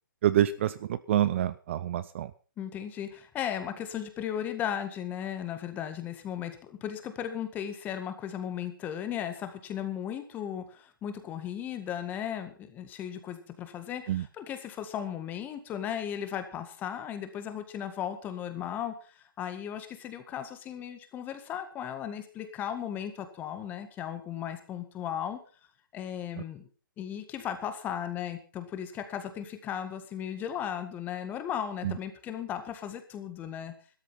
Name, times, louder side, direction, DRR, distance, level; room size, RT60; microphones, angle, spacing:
voice 1, 0.2-2.3 14.1-14.2 31.8-31.9, right 12 dB, 35° right, 15 dB, 0.6 m, -27 dB
voice 2, 2.6-25.4 25.9-26.7 27.0-33.7, left 9 dB, 15° left, 9 dB, 1.7 m, -36 dB
13.0 x 13.0 x 5.7 m, 0.37 s
hypercardioid pair, 145°, 11 cm